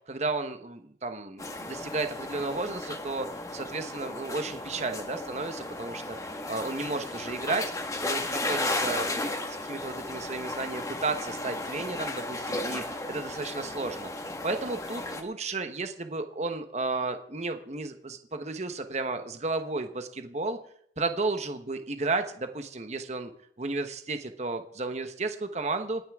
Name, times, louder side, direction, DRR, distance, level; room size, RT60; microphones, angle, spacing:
voice 1, 0.1-7.6 8.0-20.6 21.0-23.3 23.6-26.0, right 3 dB, 40° right, 8 dB, 1.0 m, -33 dB
sound 1, 1.4-15.2, left 2 dB, 20° left, 1.6 m, -34 dB
27.5 x 9.5 x 3.6 m, 0.66 s
head